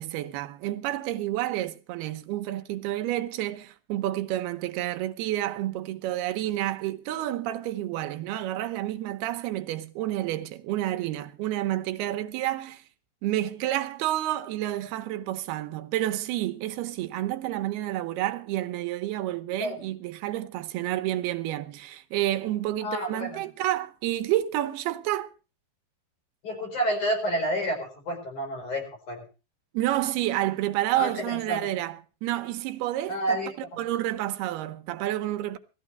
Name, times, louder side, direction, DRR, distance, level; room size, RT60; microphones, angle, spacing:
voice 1, 0.0-12.8 13.2-25.3 29.7-33.4 33.8-35.6, right 14 dB, 75° right, 2.6 m, -29 dB
voice 2, 22.8-23.4 26.4-29.2 31.0-31.7 33.1-33.5, right 1 dB, 45° left, 5.7 m, -29 dB
19.5 x 14.5 x 3.3 m
omnidirectional pair, 4.9 m